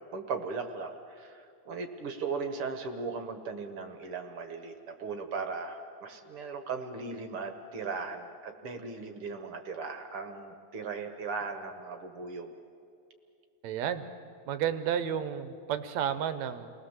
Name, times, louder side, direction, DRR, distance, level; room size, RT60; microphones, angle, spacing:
voice 1, 0.1-12.5, right 4 dB, 55° right, 6 dB, 2.1 m, -38 dB
voice 2, 13.6-14.1 14.5-16.7, right 9 dB, 70° right, 11 dB, 2.2 m, -31 dB
30.0 x 20.5 x 7.3 m, 2.4 s
omnidirectional pair, 3.4 m